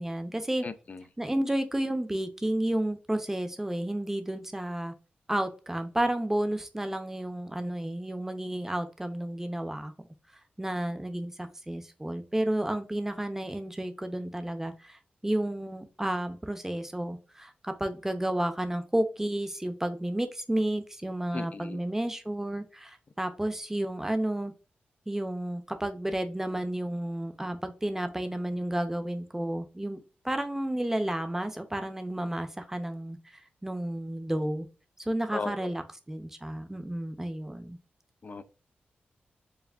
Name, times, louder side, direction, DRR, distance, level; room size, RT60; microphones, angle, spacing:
voice 1, 0.0-0.6 1.2-4.9 5.3-9.9 10.6-24.5 25.1-30.0 30.2-34.7 35.1-37.8, right 1 dB, 10° right, 8 dB, 0.7 m, -31 dB
voice 2, 0.6-1.0 21.3-21.8 35.3-35.7 38.2-38.4, left 4 dB, 45° left, 11 dB, 0.4 m, -37 dB
4.8 x 2.4 x 3.4 m, 0.33 s
cardioid pair, 85°, 4 cm